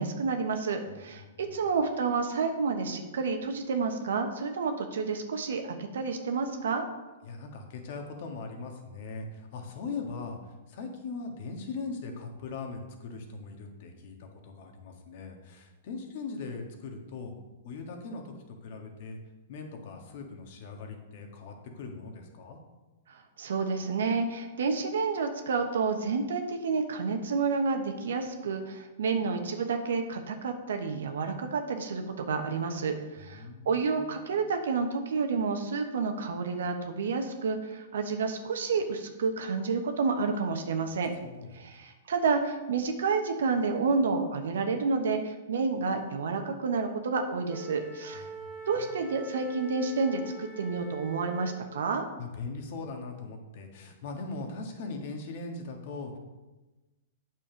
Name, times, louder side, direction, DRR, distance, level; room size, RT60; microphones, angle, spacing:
voice 1, 0.0-1.2 1.5-6.9 23.1-41.1 41.5-48.3 48.7-52.1, right 4 dB, 70° right, 5 dB, 1.1 m, -30 dB
voice 2, 0.9-1.5 7.2-17.3 17.6-19.2 19.5-22.6 33.2-34.2 40.9-41.5 41.8-41.9 48.1-48.9 52.2-56.2, left 4 dB, 55° left, 3 dB, 1.8 m, -40 dB
Wind instrument woodwind instrument, 47.5-51.8, right 1 dB, 15° left, 2.4 m, -45 dB
8.7 x 6.3 x 5.1 m, 1.1 s
hypercardioid pair, 110°, 0 cm